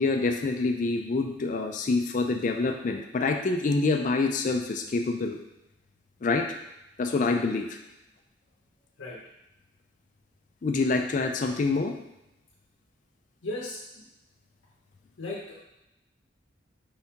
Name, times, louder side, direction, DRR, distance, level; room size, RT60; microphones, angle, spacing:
voice 1, 0.0-5.4 6.2-6.5 7.0-7.8 10.6-12.0, left 3 dB, 40° left, 4 dB, 0.4 m, -26 dB
voice 2, 13.4-14.1 15.2-15.6, left 2 dB, 80° left, -4 dB, 0.8 m, -36 dB
5.3 x 3.5 x 2.8 m, 0.90 s
head